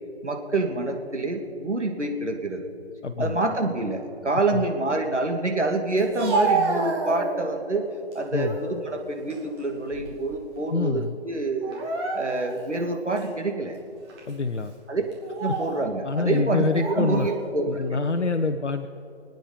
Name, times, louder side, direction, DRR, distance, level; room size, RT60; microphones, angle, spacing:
voice 1, 0.2-2.7 3.2-7.8 8.1-11.8 12.1-13.8 14.9-15.0 15.4-18.0, right 2 dB, 90° right, 3 dB, 2.5 m, -27 dB
voice 2, 3.0-3.4 4.5-4.6 8.3-8.6 10.7-11.2 14.3-14.7 16.0-17.3 17.7-18.9, left 3 dB, 85° left, 7 dB, 0.9 m, -26 dB
Speech, 6.0-7.6 8.1-8.7 9.1-10.3 10.6-10.8 11.6-12.6 13.2-13.3 14.1-14.3 15.1-15.8 16.7-17.4, right 3 dB, 25° right, 2.7 m, -29 dB
26.5 x 9.2 x 5.3 m, 2.8 s
figure-of-eight pair, 150°, 34 cm